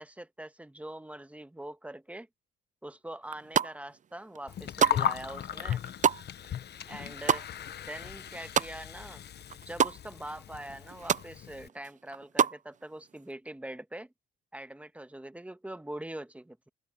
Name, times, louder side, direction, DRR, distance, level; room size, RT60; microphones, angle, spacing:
voice 1, 0.0-2.3 2.8-5.8 6.9-7.4 7.8-9.2 9.7-14.1 14.5-16.7, right 1 dB, 5° right, 1.4 m, -43 dB
sound 1, 3.2-4.0 4.3-9.1 9.4-10.0 10.4-10.5 10.7-11.3 11.7-12.6, right 8 dB, 40° right, 0.6 m, -28 dB
Gurgling, 4.5-11.7, left 10 dB, 55° left, 1.0 m, -37 dB
cardioid pair, 90°, 20 cm